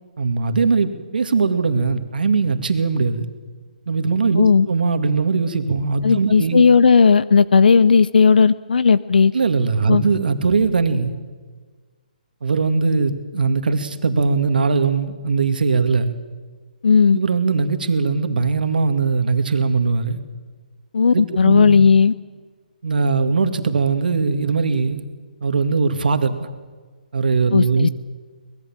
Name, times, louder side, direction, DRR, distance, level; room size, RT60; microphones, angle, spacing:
voice 1, 0.2-3.3 3.9-6.6 9.3-11.1 12.4-16.1 17.1-20.2 21.1-21.8 22.8-25.0 25.4-26.4 27.1-27.9, right 4 dB, 75° right, 8 dB, 2.1 m, -20 dB
voice 2, 4.4-4.7 6.0-9.3 9.9-10.0 16.8-17.2 20.9-22.1 27.5-27.9, left 5 dB, 75° left, 17 dB, 0.6 m, -14 dB
23.5 x 20.0 x 7.4 m, 1.4 s
hypercardioid pair, 150°, 5 cm